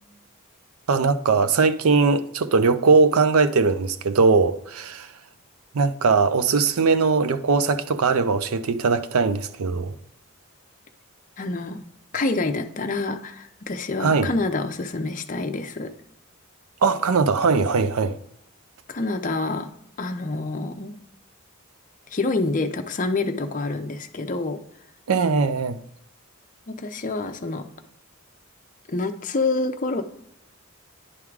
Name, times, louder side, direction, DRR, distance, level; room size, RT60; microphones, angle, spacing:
voice 1, 0.9-5.1 5.7-10.0 14.0-14.3 16.8-18.2 25.1-25.8, right 4 dB, 85° right, 0.5 m, -20 dB
voice 2, 11.4-11.8 12.1-15.9 18.9-19.7 20.0-20.9 22.1-24.6 26.7-27.6 28.9-30.0, left 3 dB, 35° left, 0.6 m, -27 dB
9.9 x 3.6 x 4.7 m
head